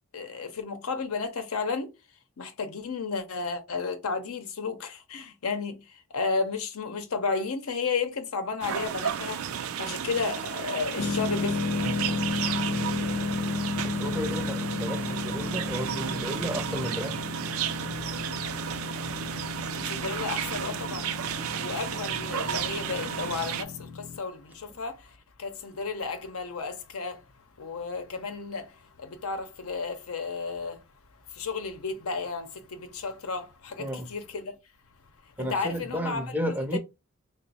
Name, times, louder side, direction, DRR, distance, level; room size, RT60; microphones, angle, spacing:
voice 1, 0.1-1.9 2.4-5.8 6.1-9.4 9.8-12.2 19.2-19.3 19.8-21.1 21.6-27.2 27.6-30.8 31.3-34.5 35.5-36.8, left 4 dB, 85° left, 0.7 m, -33 dB
sound 1, 8.6-23.6, right 9 dB, 80° right, 0.4 m, -33 dB
sound 2, 11.0-24.2, left 4 dB, 50° left, 0.4 m, -33 dB
voice 2, 13.8-17.2 33.8-34.1 35.4-36.8, equal, 10° right, 0.5 m, -33 dB
2.9 x 2.0 x 4.0 m
head